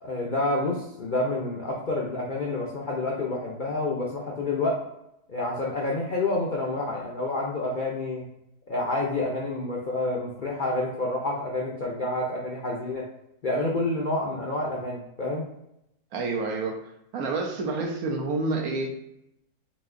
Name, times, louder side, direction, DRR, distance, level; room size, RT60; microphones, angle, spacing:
voice 1, 0.0-4.8 5.3-8.3 8.7-13.1 13.4-15.4, left 2 dB, 60° left, -3 dB, 0.5 m, -28 dB
voice 2, 16.1-16.8 17.1-19.0, right 3 dB, 70° right, 2 dB, 1.1 m, -28 dB
5.3 x 2.7 x 2.6 m, 0.80 s
omnidirectional pair, 1.7 m